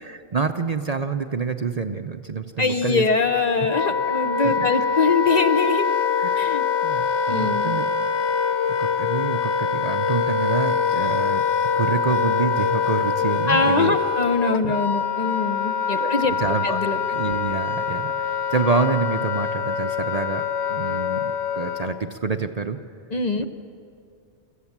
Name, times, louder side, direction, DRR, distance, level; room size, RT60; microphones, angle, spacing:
voice 1, 0.0-3.0 4.4-4.7 6.2-8.3 8.8-11.4 11.8-14.0 14.6-14.7 16.0-16.8 17.1-20.4 20.7-22.8, right 5 dB, 40° right, 7 dB, 0.6 m, -27 dB
voice 2, 2.6-5.8 6.4-6.6 7.3-7.8 13.5-16.3 16.6-17.0 23.1-23.5, left 4 dB, 40° left, 7 dB, 0.8 m, -23 dB
Wind instrument woodwind instrument, 3.2-22.0, left 6 dB, 75° left, 1.0 m, -24 dB
25.0 x 15.0 x 7.3 m, 2.4 s
omnidirectional pair, 1.1 m